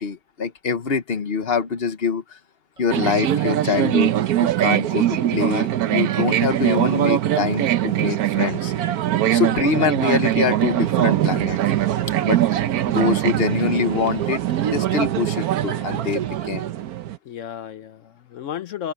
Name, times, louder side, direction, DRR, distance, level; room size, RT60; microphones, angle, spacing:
voice 1, 0.0-2.4 2.8-8.7 9.3-11.6 12.2-12.4 12.9-16.6, left 5 dB, 40° left, 1.2 m, -24 dB
Cheering, 2.8-16.4, equal, 20° right, 4.7 m, -52 dB
sound 1, 2.9-17.2, right 12 dB, 70° right, 1.2 m, -22 dB
voice 2, 17.2-18.9, left 9 dB, 65° left, 0.9 m, -34 dB
open air
omnidirectional pair, 1.7 m